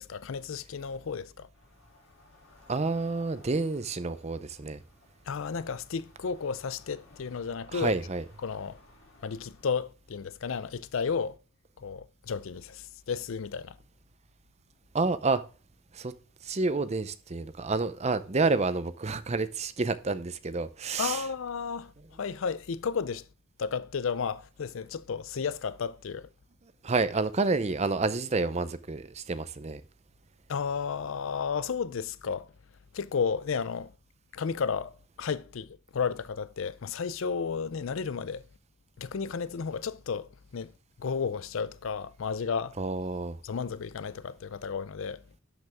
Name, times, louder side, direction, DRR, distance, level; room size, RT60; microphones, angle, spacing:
voice 1, 0.0-1.5 5.3-8.0 8.4-8.8 9.2-11.4 11.8-13.8 21.0-23.3 23.6-26.3 30.5-32.5 32.9-33.9 34.3-38.4 39.0-42.8 43.4-45.2, left 6 dB, 65° left, 0.5 m, -33 dB
sound 1, 1.5-9.7, left 2 dB, 85° left, 4.7 m, -59 dB
voice 2, 2.7-4.8 7.7-8.2 14.9-15.4 15.9-16.1 16.4-21.2 26.8-29.8 42.8-43.4, right 3 dB, 30° right, 0.6 m, -29 dB
12.0 x 5.3 x 3.5 m
head